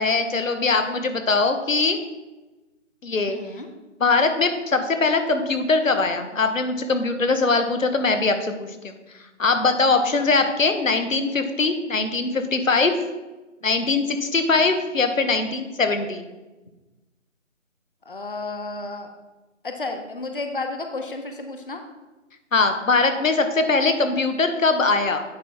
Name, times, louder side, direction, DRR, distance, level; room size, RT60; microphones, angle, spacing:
voice 1, 0.0-2.0 3.0-3.4 4.0-9.0 9.4-13.0 13.6-16.3 22.5-25.2, left 3 dB, 90° left, 7 dB, 1.1 m, -21 dB
voice 2, 3.3-3.7 10.1-10.5 14.5-14.6 18.1-19.1 19.6-21.8, left 3 dB, 45° left, 5 dB, 0.6 m, -32 dB
9.4 x 3.5 x 4.2 m, 1.1 s
figure-of-eight pair, 180°, 38 cm